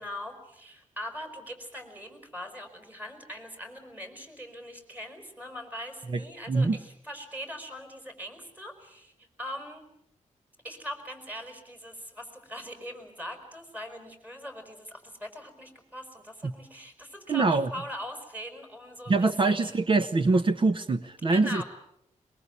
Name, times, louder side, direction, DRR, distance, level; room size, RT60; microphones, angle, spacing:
voice 1, 0.0-9.8 10.6-19.2 19.5-19.7 21.3-21.6, equal, 10° right, 5 dB, 5.1 m, -41 dB
voice 2, 17.3-17.7 19.1-21.6, right 3 dB, 40° right, 11 dB, 1.0 m, -24 dB
23.0 x 22.0 x 8.3 m, 0.79 s
wide cardioid pair, 125°, 13 cm